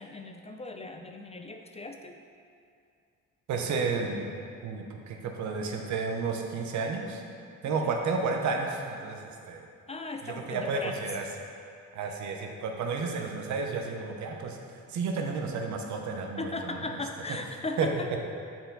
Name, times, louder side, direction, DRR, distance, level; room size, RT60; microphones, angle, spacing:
voice 1, 0.0-2.2 7.6-8.0 9.9-11.0 16.4-18.2, left 2 dB, 20° left, 5 dB, 0.4 m, -38 dB
voice 2, 3.5-4.3 4.6-7.2 7.6-9.7 10.2-11.2 11.9-14.6 14.9-17.0 17.8-17.9, right 4 dB, 70° right, 2 dB, 0.8 m, -32 dB
6.8 x 4.4 x 3.9 m, 2.4 s
cardioid pair, 90°, 30 cm